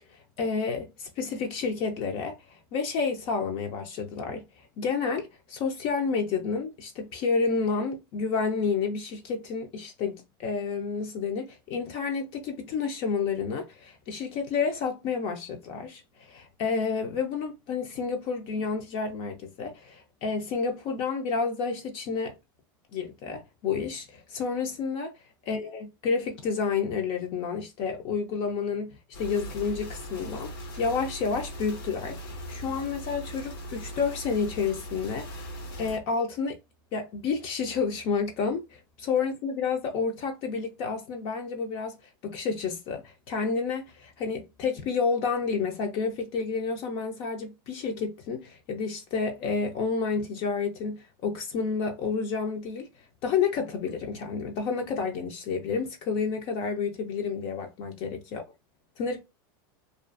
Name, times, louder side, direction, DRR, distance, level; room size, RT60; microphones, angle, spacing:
voice 1, 0.1-2.4 2.7-4.4 4.8-22.3 22.9-25.1 25.5-30.5 30.8-32.2 32.5-36.6 36.9-42.0 42.2-52.9 53.2-58.4 59.0-59.2, left 5 dB, 50° left, 0.5 m, -30 dB
sound 1, 29.1-36.0, equal, 85° left, 0.8 m, -40 dB
2.4 x 2.3 x 2.4 m
supercardioid pair, 120°, 12 cm